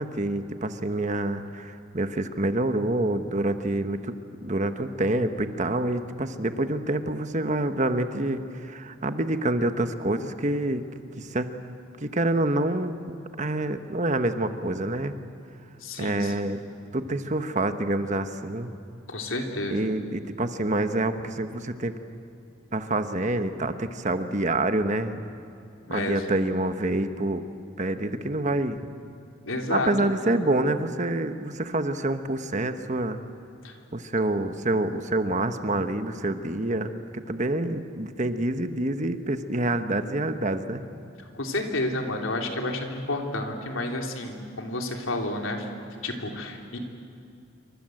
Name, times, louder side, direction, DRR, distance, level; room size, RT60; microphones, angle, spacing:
voice 1, 0.0-4.1 4.4-10.8 11.2-11.5 12.0-15.1 16.0-16.6 16.9-18.8 19.7-21.9 22.7-25.2 25.9-27.4 27.8-28.9 29.7-33.2 33.9-40.8, right 2 dB, 35° right, 9 dB, 1.2 m, -27 dB
voice 2, 15.8-16.3 19.1-19.9 25.8-26.3 29.4-29.9 33.6-33.8 41.3-45.7 46.0-46.8, left 2 dB, 80° left, 2 dB, 3.4 m, -30 dB
28.0 x 25.0 x 7.9 m, 2.5 s
head